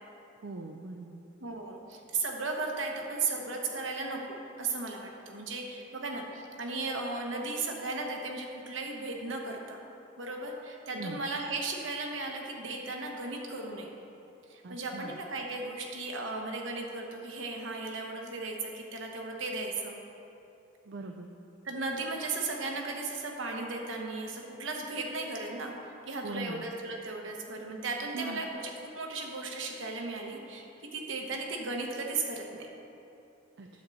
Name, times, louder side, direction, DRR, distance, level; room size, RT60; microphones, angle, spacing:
voice 1, 0.4-1.2 10.9-11.2 14.6-15.2 20.9-21.3 26.2-26.7 28.1-28.4 33.6-33.7, right 3 dB, 60° right, 2 dB, 0.4 m, -41 dB
voice 2, 1.4-9.8 10.2-13.9 14.5-20.0 21.6-32.7, right 3 dB, 75° right, 1 dB, 1.1 m, -36 dB
9.5 x 7.8 x 4.1 m, 2.9 s
head